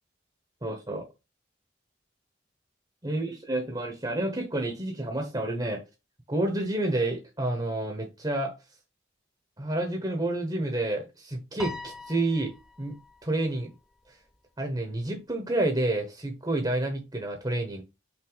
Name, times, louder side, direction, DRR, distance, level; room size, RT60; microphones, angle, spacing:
voice 1, 0.6-1.1 3.0-5.8 6.3-8.5 9.6-12.5 12.8-13.0 13.2-13.7 14.1-14.2 14.6-17.8, right 1 dB, 25° right, 4 dB, 1.1 m, -29 dB
Piano, 11.6-14.1, left 2 dB, ahead, 0.5 m, -43 dB
5.9 x 4.1 x 4.0 m, 0.27 s
head